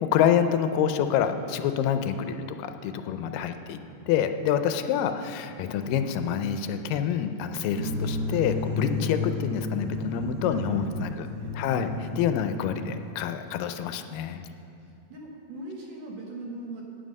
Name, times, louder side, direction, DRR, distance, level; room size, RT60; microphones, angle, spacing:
voice 1, 0.0-3.8 4.1-11.3 11.5-14.4, left 8 dB, 85° left, 9 dB, 2.2 m, -27 dB
voice 2, 4.8-5.2 10.5-11.1 11.4-11.8 14.8-16.8, right 1 dB, 60° right, -2 dB, 2.2 m, -42 dB
sound 1, 7.7-13.1, left 2 dB, 85° right, 2.8 m, -32 dB
11.0 x 9.3 x 5.3 m, 2.5 s
omnidirectional pair, 3.9 m